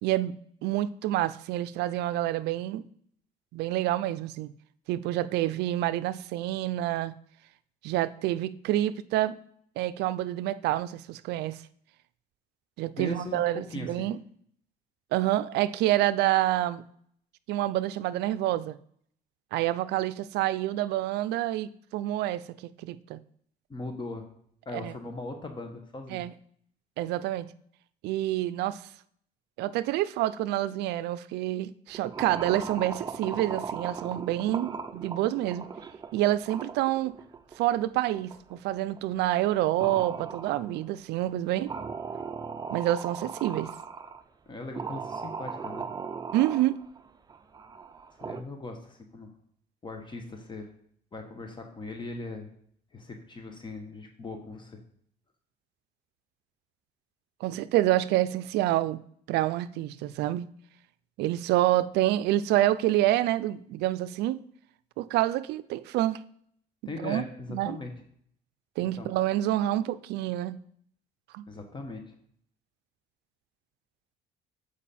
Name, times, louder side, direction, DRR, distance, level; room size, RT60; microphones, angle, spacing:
voice 1, 0.0-0.3 0.6-2.8 3.5-4.5 4.9-7.1 7.8-9.4 9.8-11.6 12.8-14.2 15.1-16.8 17.5-18.8 19.5-22.4 22.8-23.2 24.7-25.0 26.1-26.3 27.0-27.5 28.0-28.8 29.6-35.7 36.1-37.1 37.6-41.7 42.7-43.7 46.3-46.8 57.4-59.0 59.3-60.5 61.2-64.4 65.0-66.2 67.0-67.2 67.5-67.8 68.8-70.6 71.3-71.5, right 14 dB, 80° right, 0.4 m, -27 dB
voice 2, 12.9-14.1 23.7-24.3 24.7-26.2 44.5-45.9 48.2-49.3 49.8-50.7 51.1-52.5 52.9-54.8 66.9-67.9 68.8-69.1 71.5-72.0, left 3 dB, 30° left, 1.0 m, -39 dB
sound 1, 31.9-39.0 39.4-39.5 39.8-41.0 41.7-44.2 44.8-48.4, right 5 dB, 25° right, 0.5 m, -38 dB
7.3 x 4.9 x 4.2 m
cardioid pair, 110°, 17 cm